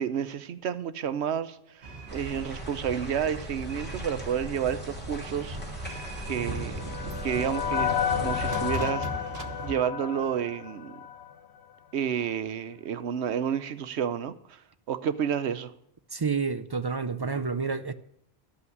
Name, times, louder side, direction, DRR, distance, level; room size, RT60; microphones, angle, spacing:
voice 1, 0.0-5.8 6.3-7.0 7.2-9.1 9.6-11.0 11.9-14.6 14.9-15.7, right 8 dB, 85° right, 1.0 m, -30 dB
sound 1, 1.8-9.7, right 2 dB, 65° right, 1.5 m, -39 dB
sound 2, 2.1-8.8, equal, 10° left, 2.7 m, -40 dB
sound 3, 6.1-11.4, left 9 dB, 85° left, 1.1 m, -32 dB
voice 2, 16.1-17.9, right 5 dB, 35° right, 0.4 m, -29 dB
13.0 x 5.8 x 9.4 m
omnidirectional pair, 1.1 m